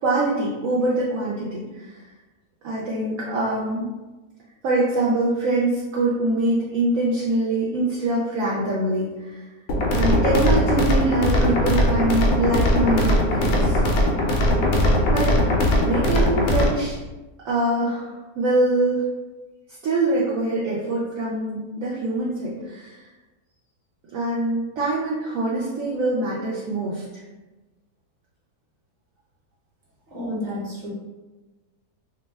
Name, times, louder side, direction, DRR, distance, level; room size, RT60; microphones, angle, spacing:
voice 1, 0.0-2.1 2.6-3.9 4.6-9.4 9.9-13.8 15.1-15.3 15.8-17.0 17.4-19.0 19.7-23.1 24.1-27.2, right 2 dB, 70° right, -6 dB, 0.8 m, -24 dB
sound 1, 9.7-16.7, left 1 dB, 70° left, 0.9 m, -20 dB
voice 2, 30.1-30.9, left 1 dB, 40° right, -6 dB, 0.9 m, -30 dB
2.7 x 2.1 x 3.2 m, 1.2 s
omnidirectional pair, 1.7 m